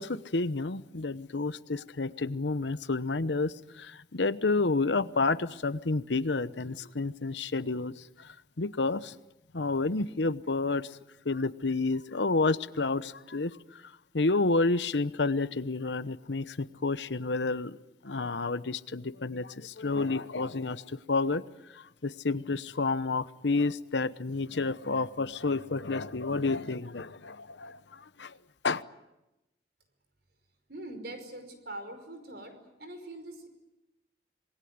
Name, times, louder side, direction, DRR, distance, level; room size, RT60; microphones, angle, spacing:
voice 1, 0.0-9.2 9.5-11.0 11.2-17.8 18.0-21.4 21.7-28.4 28.6-28.8, left 3 dB, 80° left, 14 dB, 1.0 m, -30 dB
voice 2, 30.7-33.5, right 1 dB, 65° right, 7 dB, 5.4 m, -43 dB
27.0 x 20.5 x 9.6 m, 0.96 s
head